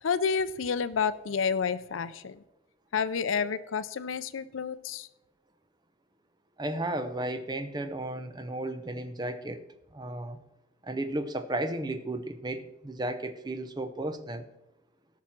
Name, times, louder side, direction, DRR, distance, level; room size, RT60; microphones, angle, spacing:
voice 1, 0.0-2.4 2.9-5.1, left 6 dB, 75° left, 15 dB, 0.5 m, -30 dB
voice 2, 6.6-9.6 9.9-10.4 10.8-14.5, right 1 dB, 20° right, 10 dB, 0.6 m, -34 dB
17.0 x 6.1 x 4.4 m, 0.93 s
head